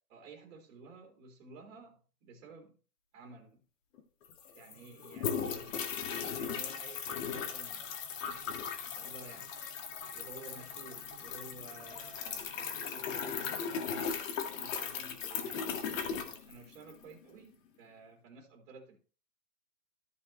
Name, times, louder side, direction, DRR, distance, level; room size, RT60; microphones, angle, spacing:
voice 1, 0.1-2.7 3.1-3.6 4.5-5.7 6.4-8.5 8.8-9.5 10.1-13.9 14.6-19.0, right 3 dB, 45° right, 2.6 m, -53 dB
sound 1, 4.0-4.1 4.2-17.0, left 6 dB, 55° left, 2.1 m, -38 dB
sound 2, 4.7-14.1, right 6 dB, 10° left, 3.0 m, -64 dB
14.5 x 5.5 x 3.1 m
hypercardioid pair, 140°, 47 cm